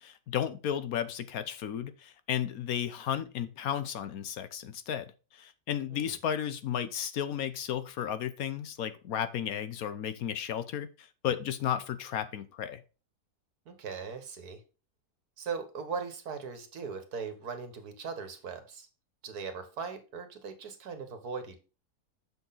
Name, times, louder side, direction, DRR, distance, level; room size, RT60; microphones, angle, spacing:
voice 1, 0.0-5.1 5.3-12.8, left 9 dB, 65° left, 12 dB, 1.1 m, -33 dB
voice 2, 13.7-14.6 15.4-18.9 19.2-21.6, right 5 dB, 70° right, 8 dB, 1.8 m, -39 dB
7.1 x 6.2 x 4.0 m, 0.32 s
omnidirectional pair, 1.7 m